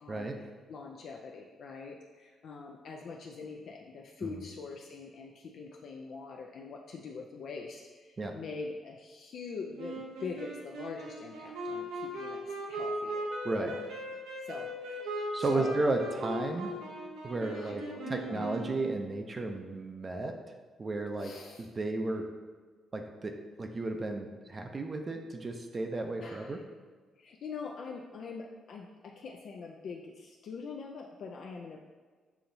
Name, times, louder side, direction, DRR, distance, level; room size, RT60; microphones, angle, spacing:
voice 1, 0.0-13.3 13.6-13.8 14.4-15.7 17.5-18.5 21.2-21.7 26.2-26.6 27.2-31.8, left 4 dB, 65° left, 0 dB, 0.4 m, -43 dB
Wind instrument woodwind instrument, 9.8-19.2, right 1 dB, 90° right, 0.8 m, -39 dB
voice 2, 15.3-16.7 17.2-17.8 18.1-20.3 20.8-21.3 21.6-22.3 22.9-26.6, right 2 dB, 30° right, 4 dB, 0.5 m, -33 dB
6.9 x 2.8 x 2.6 m, 1.4 s
cardioid pair, 90°, 0 cm